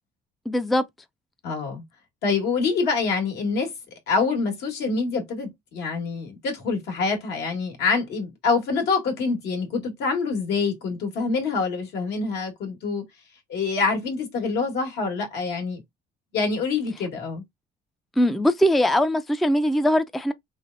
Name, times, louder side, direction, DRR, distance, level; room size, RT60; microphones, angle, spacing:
voice 1, 0.5-0.8 18.2-20.3, equal, ahead, 0.3 m, -21 dB
voice 2, 1.4-1.8 2.2-3.7 4.1-13.0 13.5-15.8 16.3-17.4, left 4 dB, 80° left, 1.5 m, -26 dB
3.3 x 3.2 x 2.5 m
cardioid pair, 110°, 17 cm